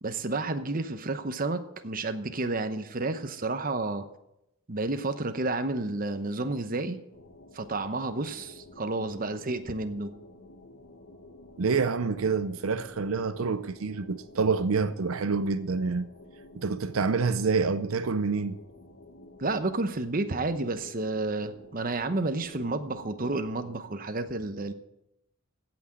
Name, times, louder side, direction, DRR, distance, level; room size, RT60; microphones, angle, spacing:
voice 1, 0.0-4.0 4.7-7.0 7.5-10.1 19.4-24.7, right 2 dB, 45° right, 0.9 m, -31 dB
sound 1, 7.1-23.8, left 2 dB, 80° left, 1.6 m, -51 dB
voice 2, 11.6-16.1 16.5-18.6, right 4 dB, 90° right, 0.6 m, -27 dB
16.0 x 6.1 x 7.7 m
head